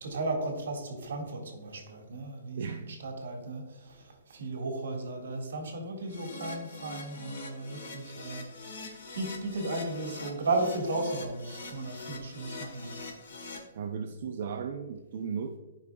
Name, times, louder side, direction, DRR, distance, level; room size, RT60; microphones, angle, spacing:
voice 1, 0.0-8.7 9.1-12.9, right 2 dB, 65° right, 2 dB, 1.7 m, -35 dB
voice 2, 2.6-3.0 13.7-15.6, right 6 dB, 40° right, 3 dB, 0.4 m, -36 dB
Keyboard (musical), 6.1-13.6, left 3 dB, 55° left, 1.4 m, -44 dB
11.5 x 5.3 x 2.3 m, 1.2 s
hypercardioid pair, 180°, 0 cm